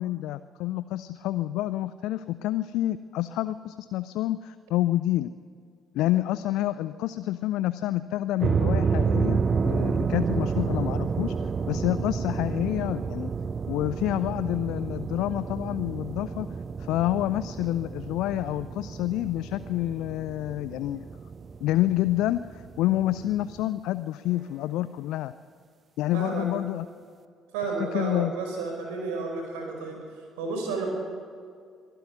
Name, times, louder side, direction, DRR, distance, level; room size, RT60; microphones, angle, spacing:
voice 1, 0.0-5.3 5.9-11.3 11.7-13.3 13.7-16.5 16.8-21.0 21.6-25.3 26.0-26.9 27.8-28.3, left 14 dB, 60° left, 14 dB, 0.5 m, -28 dB
sound 1, 8.4-23.6, right 5 dB, 35° right, 0.8 m, -30 dB
voice 2, 26.1-26.5 27.5-30.0 30.4-30.9, right 4 dB, 65° right, 2 dB, 5.2 m, -31 dB
23.5 x 14.0 x 9.4 m, 2.2 s
figure-of-eight pair, 45°, 0 cm